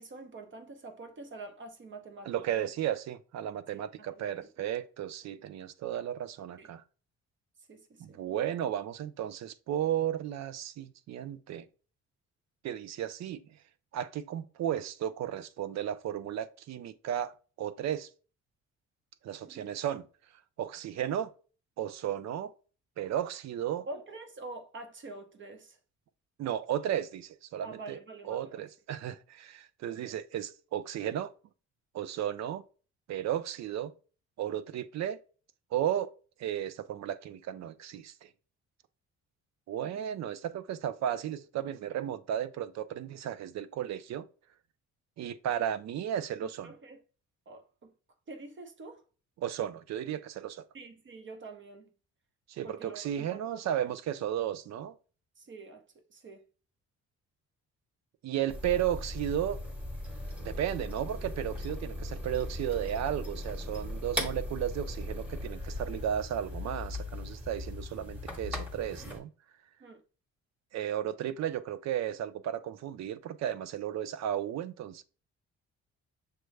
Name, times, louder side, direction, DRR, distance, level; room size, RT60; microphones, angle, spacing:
voice 1, 0.0-2.6 3.7-4.1 4.4-4.5 6.6-6.7 7.7-8.2 19.4-19.7 23.9-25.8 27.6-28.6 30.0-30.2 39.8-40.0 46.4-47.0 47.5-47.9 48.3-49.0 50.7-51.9 52.6-53.7 55.4-55.8 56.1-56.4 69.8-70.0, right 3 dB, 40° right, 0.8 m, -46 dB
voice 2, 2.3-6.8 8.0-11.7 12.6-13.4 13.9-18.1 19.2-20.0 20.6-21.3 21.8-22.5 23.0-23.9 26.4-28.0 28.2-31.3 31.9-32.6 33.1-33.9 34.4-35.2 35.7-36.1 36.4-38.3 39.7-44.2 45.2-46.7 49.4-50.6 52.5-54.9 58.2-59.6 60.4-69.3 70.7-75.0, right 10 dB, 65° right, 0.5 m, -34 dB
sound 1, 58.5-69.2, left 1 dB, 5° right, 1.2 m, -38 dB
6.4 x 2.2 x 3.2 m
cardioid pair, 90°, 30 cm